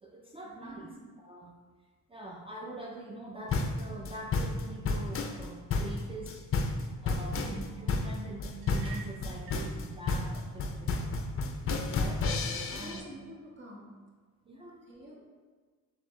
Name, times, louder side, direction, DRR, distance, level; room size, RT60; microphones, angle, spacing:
voice 1, 0.0-0.9 1.2-1.5 2.1-6.5 7.0-11.1 12.0-13.1 14.5-14.9, right 2 dB, 15° right, -1 dB, 0.4 m, -44 dB
voice 2, 0.6-1.0 12.4-14.0 14.9-15.1, equal, 35° right, -3 dB, 1.3 m, -48 dB
sound 1, 3.5-13.0, left 3 dB, 40° left, 0.5 m, -31 dB
sound 2, 8.6-9.7, right 5 dB, 90° right, 0.8 m, -48 dB
4.3 x 3.7 x 3.2 m, 1.5 s
cardioid pair, 100°, 34 cm